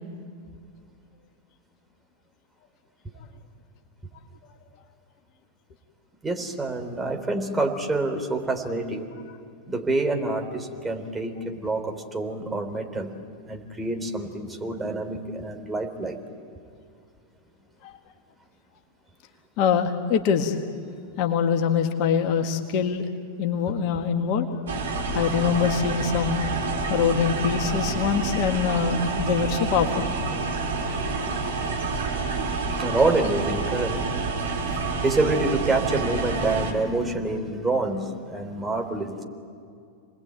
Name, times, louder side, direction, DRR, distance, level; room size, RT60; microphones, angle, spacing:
voice 1, 6.2-9.1 9.7-13.2 13.5-16.2 30.8-31.7 32.8-34.1 34.7-39.2, right 2 dB, 10° right, 4 dB, 3.6 m, -27 dB
voice 2, 19.6-20.6 21.2-23.1 23.4-24.5 25.1-26.5 26.9-30.1, left 7 dB, 45° left, 6 dB, 1.8 m, -24 dB
sound 1, 24.7-36.7, right 4 dB, 65° right, 3.9 m, -28 dB
29.5 x 20.5 x 9.1 m, 2.3 s
figure-of-eight pair, 90°, 0 cm